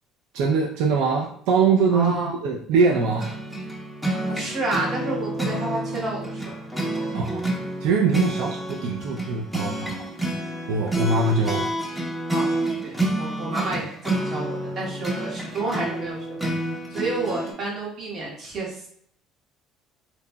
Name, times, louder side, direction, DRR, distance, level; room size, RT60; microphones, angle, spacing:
voice 1, 0.3-3.4 7.1-7.4 7.8-10.0 10.7-11.7, right 4 dB, 85° right, 0 dB, 0.4 m, -22 dB
voice 2, 1.9-2.3 4.3-6.4 11.0-11.1 12.3-12.5 12.8-16.5 16.9-18.9, right 2 dB, 45° right, -4 dB, 1.2 m, -30 dB
sound 1, 2.9-17.5, right 1 dB, 5° right, 0.6 m, -29 dB
2.9 x 2.7 x 2.2 m, 0.64 s
cardioid pair, 115°, 0 cm